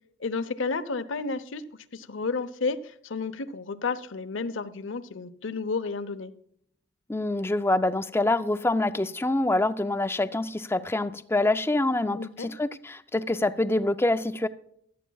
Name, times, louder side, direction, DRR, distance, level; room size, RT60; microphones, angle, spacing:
voice 1, 0.2-1.6 1.9-6.3 12.2-12.5, left 4 dB, 65° left, 13 dB, 0.8 m, -31 dB
voice 2, 7.1-14.5, left 2 dB, 10° left, 13 dB, 0.4 m, -26 dB
16.5 x 12.0 x 2.3 m, 0.70 s
head